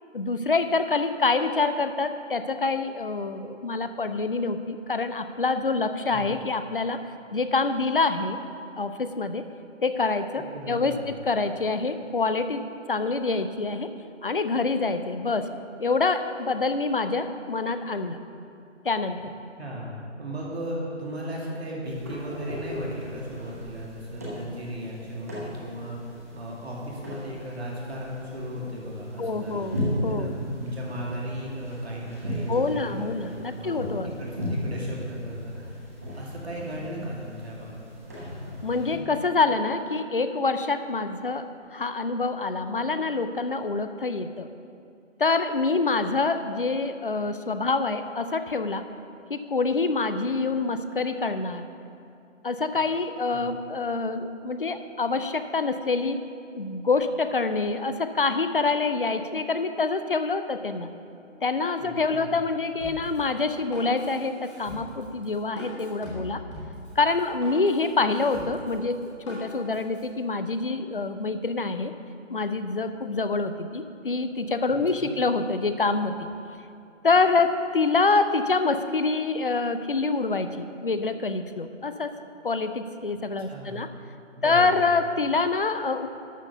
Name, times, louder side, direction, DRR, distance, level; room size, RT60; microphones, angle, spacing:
voice 1, 0.1-7.0 7.3-8.4 8.8-9.5 9.8-12.6 12.9-13.9 14.2-15.5 15.8-18.2 18.8-19.3 29.2-29.8 30.0-30.4 32.5-34.1 38.6-44.5 45.2-48.8 49.3-51.7 52.4-56.3 56.6-60.9 61.4-66.4 67.0-71.9 72.3-76.3 77.0-82.2 82.4-83.9 84.4-86.1, left 3 dB, 45° left, 10 dB, 0.5 m, -26 dB
voice 2, 10.3-11.1 19.6-35.9 36.2-37.8 53.3-53.5 61.8-62.4 74.7-75.1 83.4-83.8 84.4-84.9, equal, 55° right, -3 dB, 2.2 m, -36 dB
sound 1, 21.8-38.9, left 1 dB, 10° right, 0.8 m, -36 dB
Drum kit, 62.8-70.0, left 1 dB, 25° left, 1.8 m, -41 dB
12.0 x 4.6 x 6.7 m, 2.6 s
figure-of-eight pair, 155°, 38 cm